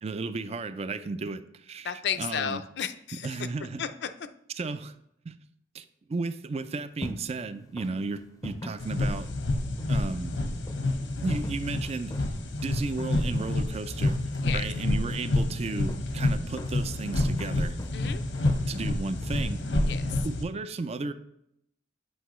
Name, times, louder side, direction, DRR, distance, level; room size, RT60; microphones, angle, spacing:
voice 1, 0.0-1.9 2.2-2.6 3.2-3.8 4.6-5.0 5.2-5.3 5.7-9.3 9.9-10.4 11.2-12.1 12.6-14.2 14.5-17.8 18.7-19.6 20.2-21.1, right 3 dB, 35° right, 12 dB, 0.4 m, -34 dB
voice 2, 1.8-3.4 3.8-4.1 14.4-14.6 17.9-18.2 19.8-20.3, left 8 dB, 65° left, 10 dB, 0.5 m, -33 dB
sound 1, 6.6-20.0, left 1 dB, 20° left, 0.5 m, -44 dB
sound 2, 8.8-20.4, left 2 dB, 90° left, 0.9 m, -29 dB
8.0 x 5.5 x 3.1 m, 0.75 s
head